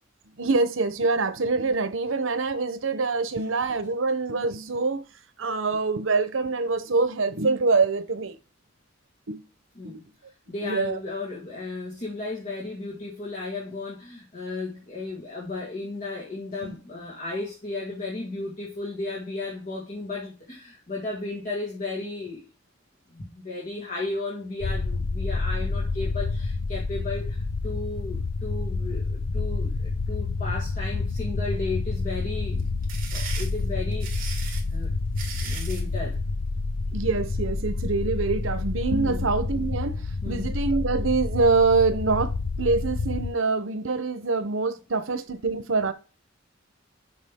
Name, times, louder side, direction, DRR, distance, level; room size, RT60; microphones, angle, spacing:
voice 1, 0.4-5.0 5.4-8.4 9.3-9.4 9.8-10.0 10.6-11.0 16.6-16.8 36.9-45.9, right 3 dB, 85° right, 0.9 m, -25 dB
voice 2, 10.5-22.5 23.1-32.7 33.1-34.4 34.7-34.9 35.4-36.2 39.0-39.3 40.2-40.5, left 3 dB, 40° left, 1.8 m, -34 dB
sound 1, 24.6-43.3, left 3 dB, 90° left, 0.5 m, -29 dB
sound 2, 32.6-35.9, right 6 dB, 45° right, 2.1 m, -38 dB
7.2 x 5.0 x 3.6 m
head